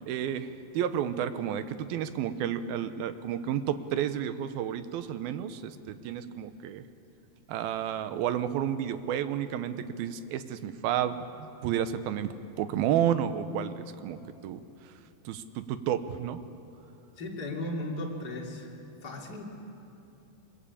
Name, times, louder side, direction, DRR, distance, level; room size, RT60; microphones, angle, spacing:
voice 1, 0.1-6.8 7.5-14.9 15.3-16.4, right 9 dB, 80° right, 11 dB, 2.7 m, -31 dB
voice 2, 17.2-18.7 19.0-19.4, left 1 dB, 25° left, -2 dB, 3.1 m, -36 dB
24.0 x 21.5 x 8.6 m, 2.8 s
omnidirectional pair, 4.4 m